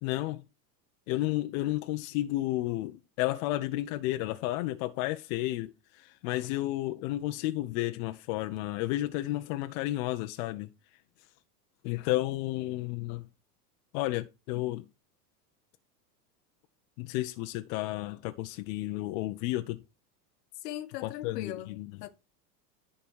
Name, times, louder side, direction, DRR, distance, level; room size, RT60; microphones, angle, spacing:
voice 1, 0.0-0.4 1.1-10.7 11.8-13.3 13.9-14.8 17.0-19.8 21.0-21.9, left 17 dB, 60° left, 0.8 m, -32 dB
voice 2, 20.6-22.1, left 12 dB, 75° left, 1.3 m, -40 dB
11.0 x 4.0 x 4.7 m
supercardioid pair, 110°, 48 cm